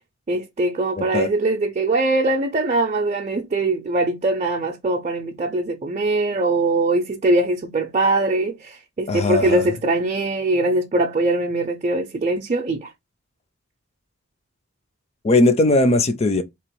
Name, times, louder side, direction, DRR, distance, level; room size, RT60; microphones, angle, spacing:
voice 1, 0.3-12.9, right 2 dB, 35° right, 0.5 m, -22 dB
voice 2, 1.0-1.3 9.1-9.7 15.2-16.4, left 2 dB, 30° left, 0.5 m, -18 dB
3.7 x 3.0 x 4.6 m
head